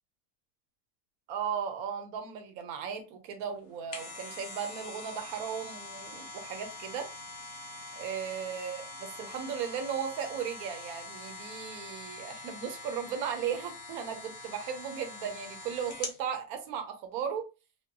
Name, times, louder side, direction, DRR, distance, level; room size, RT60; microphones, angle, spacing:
voice 1, 1.3-7.1 8.0-17.5, right 7 dB, 75° right, 1.2 m, -36 dB
sound 1, 3.6-16.2 16.7-16.8, left 3 dB, 50° left, 1.0 m, -44 dB
5.2 x 2.2 x 2.6 m
omnidirectional pair, 1.6 m